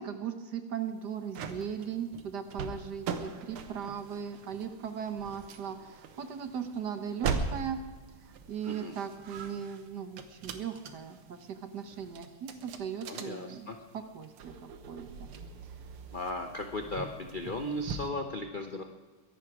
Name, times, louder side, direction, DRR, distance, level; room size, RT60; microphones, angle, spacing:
voice 1, 0.0-7.8 8.2-13.7 14.1-15.3, right 7 dB, 55° right, 8 dB, 1.4 m, -38 dB
sound 1, 0.9-18.1, right 5 dB, 80° right, 2.0 m, -41 dB
voice 2, 13.1-13.8 16.1-18.8, left 1 dB, 50° left, 4 dB, 0.6 m, -36 dB
22.0 x 11.0 x 4.8 m, 1.3 s
omnidirectional pair, 2.4 m